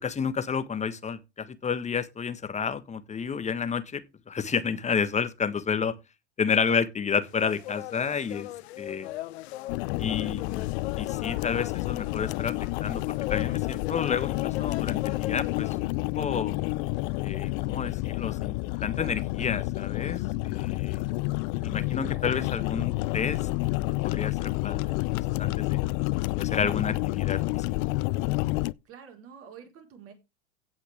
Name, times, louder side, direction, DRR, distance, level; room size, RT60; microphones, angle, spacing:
voice 1, 0.0-5.9 6.4-8.5 8.8-9.1 10.0-10.7 11.0-12.6 12.8-15.9 16.2-16.5 17.2-18.5 18.8-21.0 21.6-23.4 24.0-25.8 26.4-27.6, left 6 dB, 20° left, 1.5 m, -30 dB
sound 1, 7.2-15.8, left 16 dB, 70° left, 0.9 m, -39 dB
sound 2, 9.7-28.7, left 21 dB, 50° left, 0.5 m, -29 dB
voice 2, 28.8-30.1, right 7 dB, 40° right, 4.6 m, -48 dB
16.5 x 5.8 x 3.6 m
hypercardioid pair, 90°, 34 cm